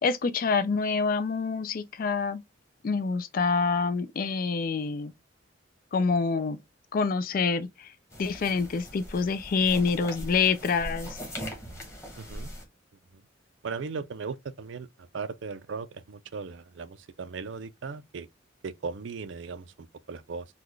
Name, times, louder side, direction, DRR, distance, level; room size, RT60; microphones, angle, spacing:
voice 1, 0.0-2.4 2.8-5.1 5.9-6.6 6.9-7.9 8.2-11.1, left 4 dB, 45° left, 0.4 m, -26 dB
sound 1, 8.1-12.6, equal, 15° left, 1.2 m, -40 dB
voice 2, 12.2-12.5 13.6-14.9 15.1-18.3 18.6-20.5, right 5 dB, 70° right, 0.4 m, -37 dB
3.9 x 2.3 x 3.1 m
head